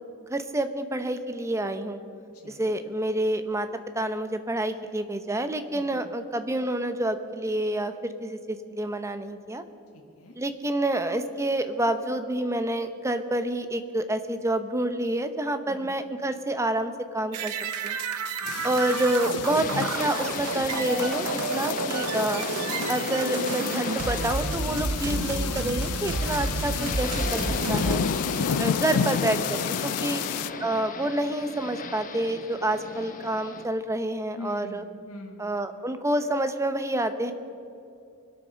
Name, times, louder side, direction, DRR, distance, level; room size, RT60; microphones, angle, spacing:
voice 1, 0.3-2.0 2.5-3.7 3.9-9.6 10.4-17.5 17.8-18.0 18.6-22.4 22.9-27.4 27.7-28.0 28.6-30.2 30.6-34.8 35.4-37.3, right 1 dB, 15° right, 9 dB, 0.8 m, -28 dB
voice 2, 2.3-2.7 5.7-6.1 9.9-10.4 15.7-16.0 18.4-18.8 29.9-30.3 34.3-35.5, left 1 dB, 70° left, 2 dB, 1.5 m, -44 dB
sound 1, 17.3-28.0, right 4 dB, 85° right, 0.9 m, -31 dB
sound 2, 18.4-30.5, left 8 dB, 85° left, 0.4 m, -32 dB
sound 3, 19.4-33.6, left 3 dB, 35° left, 1.1 m, -35 dB
23.0 x 8.4 x 6.4 m, 2.6 s
head